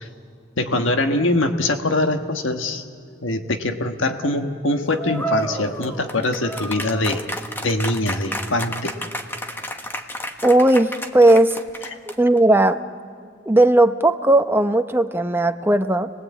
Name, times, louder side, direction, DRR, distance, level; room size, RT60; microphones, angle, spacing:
voice 1, 0.6-2.8 3.2-7.2 7.6-9.0, left 2 dB, 85° left, 6 dB, 1.4 m, -23 dB
sound 1, 5.0-12.4, equal, 10° left, 1.2 m, -31 dB
voice 2, 10.4-11.6 12.2-12.8 13.5-16.1, right 1 dB, 10° right, 8 dB, 0.7 m, -16 dB
29.5 x 20.5 x 8.5 m, 2.2 s
head